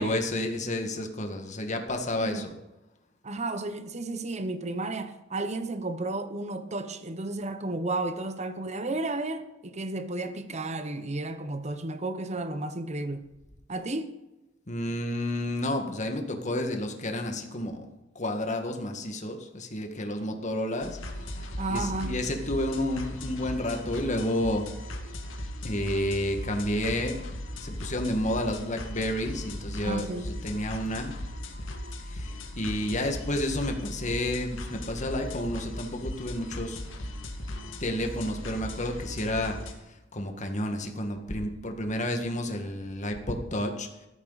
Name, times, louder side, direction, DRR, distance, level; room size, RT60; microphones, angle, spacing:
voice 1, 0.0-2.5 14.7-17.8 18.2-21.0 21.7-24.6 25.6-27.2 27.5-31.1 32.1-36.8 37.8-39.6 40.1-43.9, left 1 dB, 40° left, 1.9 m, -30 dB
voice 2, 3.2-13.3 13.7-14.1 21.6-22.3 29.8-30.3, right 2 dB, 35° right, 1.0 m, -33 dB
sound 1, 20.8-39.7, left 1 dB, 85° left, 2.1 m, -38 dB
15.5 x 13.5 x 4.2 m
head